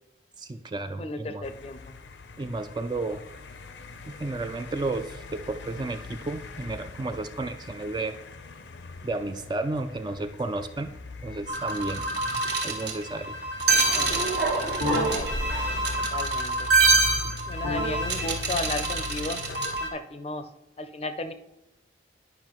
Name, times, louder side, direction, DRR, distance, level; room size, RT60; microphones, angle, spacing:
voice 1, 0.4-1.5 2.4-3.2 4.1-8.2 9.0-10.9 11.2-12.0 12.6-13.4, right 2 dB, 25° right, 8 dB, 0.3 m, -32 dB
voice 2, 1.0-1.9 13.9-14.1 14.9-15.3 16.1-16.7 17.5-19.4 19.8-20.4 20.8-21.3, left 2 dB, 35° left, 9 dB, 0.5 m, -34 dB
sound 1, 1.4-19.8, left 4 dB, 80° left, 0.6 m, -41 dB
sound 2, 11.5-19.9, right 3 dB, 65° right, 1.3 m, -25 dB
10.5 x 5.4 x 3.0 m, 0.91 s
head